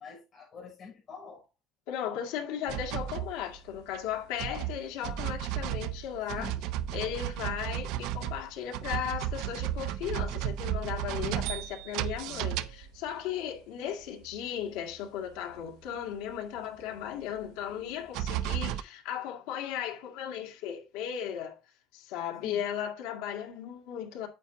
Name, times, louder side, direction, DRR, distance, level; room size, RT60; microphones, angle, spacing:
voice 1, 0.0-1.5 6.4-6.7 22.4-22.6, left 5 dB, 30° left, 5.9 m, -46 dB
voice 2, 1.9-6.5 6.9-21.6 21.9-24.3, left 9 dB, 90° left, 2.1 m, -36 dB
sound 1, 2.7-4.1 4.4-13.2 14.3-14.4 14.9-15.0 16.6-16.7 17.7-17.8 18.1-18.8, right 12 dB, 65° right, 0.5 m, -34 dB
9.1 x 8.2 x 2.7 m
cardioid pair, 170°, 0 cm